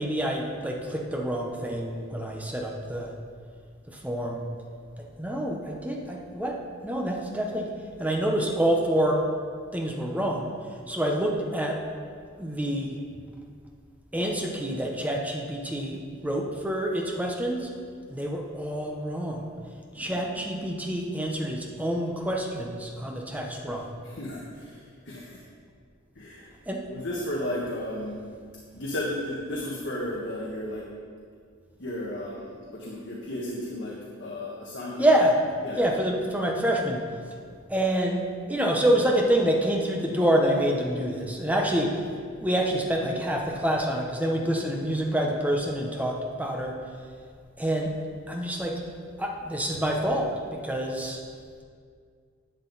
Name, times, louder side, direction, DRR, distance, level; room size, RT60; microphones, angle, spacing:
voice 1, 0.0-3.1 3.9-4.5 5.2-6.6 6.8-7.7 8.0-9.3 9.7-11.8 12.4-13.0 14.1-17.7 18.1-19.5 19.9-23.9 26.7-26.8 35.0-35.4 35.8-37.0 37.7-42.0 42.4-46.8 47.6-47.9 48.3-48.8 49.2-51.2, right 1 dB, 10° right, 0 dB, 0.9 m, -27 dB
voice 2, 19.9-20.4 24.0-25.4 26.1-26.5 26.9-28.2 28.7-30.9 31.8-35.1 35.6-35.8, left 1 dB, 60° left, -5 dB, 1.5 m, -34 dB
11.5 x 8.0 x 4.1 m, 2.1 s
head